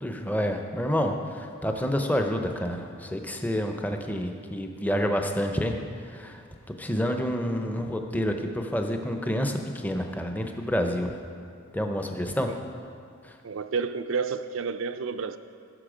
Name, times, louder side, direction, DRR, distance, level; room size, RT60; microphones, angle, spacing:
voice 1, 0.0-6.4 6.8-11.1 11.7-12.5 13.2-13.3, equal, 10° left, 0.6 m, -28 dB
voice 2, 13.4-15.4, right 5 dB, 60° right, 0.4 m, -30 dB
15.5 x 6.7 x 5.0 m
head